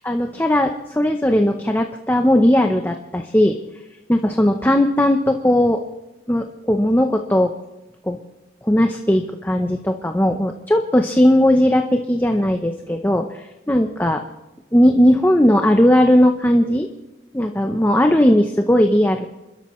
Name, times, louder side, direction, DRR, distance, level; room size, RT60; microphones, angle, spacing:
voice 1, 0.0-3.6 4.1-5.8 6.3-7.5 8.1-8.2 8.6-14.2 14.7-16.9 17.3-19.3, left 1 dB, 10° left, 4 dB, 0.7 m, -17 dB
29.0 x 13.0 x 3.1 m, 1.0 s
head